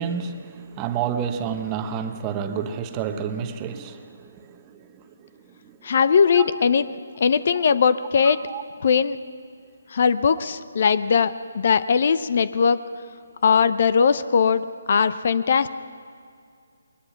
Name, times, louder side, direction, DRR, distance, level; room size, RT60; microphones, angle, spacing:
voice 1, 0.0-5.8 6.3-6.5 7.6-7.7 8.2-8.6, right 7 dB, 20° right, 7 dB, 1.1 m, -30 dB
voice 2, 5.8-6.8 7.2-8.4 8.8-9.2 9.9-12.8 13.4-15.7, left 6 dB, 50° left, 14 dB, 0.7 m, -20 dB
21.5 x 20.5 x 5.9 m, 2.3 s
figure-of-eight pair, 150°, 0 cm